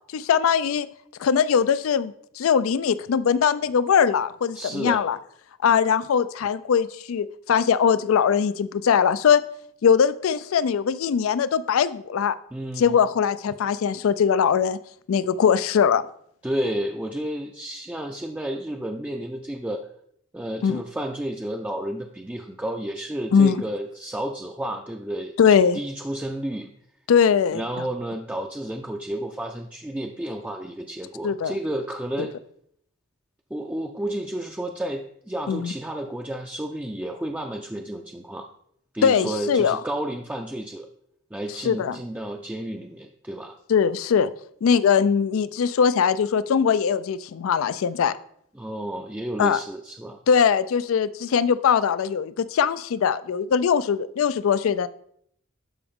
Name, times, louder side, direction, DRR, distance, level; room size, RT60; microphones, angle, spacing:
voice 1, 0.1-0.9 1.2-5.2 5.6-9.4 9.8-12.3 12.8-14.8 15.1-16.0 20.6-20.8 23.3-23.6 25.4-25.8 27.1-27.9 31.2-31.5 32.2-32.3 35.5-35.7 39.0-39.8 41.6-42.0 43.7-44.3 44.6-48.2 49.4-49.6 50.3-54.9, left 7 dB, 90° left, 15 dB, 0.4 m, -21 dB
voice 2, 4.5-5.0 12.5-12.9 16.4-19.9 20.3-25.4 25.7-26.7 27.5-32.3 33.5-38.5 38.9-40.9 41.3-43.6 48.6-50.2, right 1 dB, 5° right, 2 dB, 0.4 m, -31 dB
12.0 x 4.7 x 3.6 m, 0.68 s
head